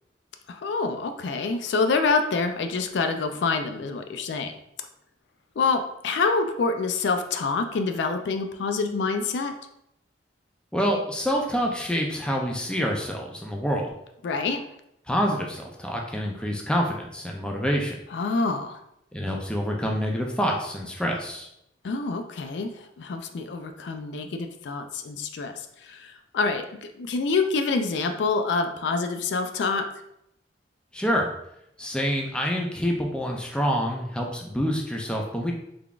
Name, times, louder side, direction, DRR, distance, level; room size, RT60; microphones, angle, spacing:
voice 1, 0.5-4.5 5.6-9.5 14.2-14.6 18.1-18.8 21.8-29.9, left 4 dB, 65° left, 7 dB, 0.4 m, -26 dB
voice 2, 10.7-13.9 15.1-17.9 19.1-21.5 30.9-31.3 31.8-35.5, equal, 5° left, 0 dB, 0.4 m, -27 dB
3.7 x 3.4 x 2.4 m, 0.78 s
head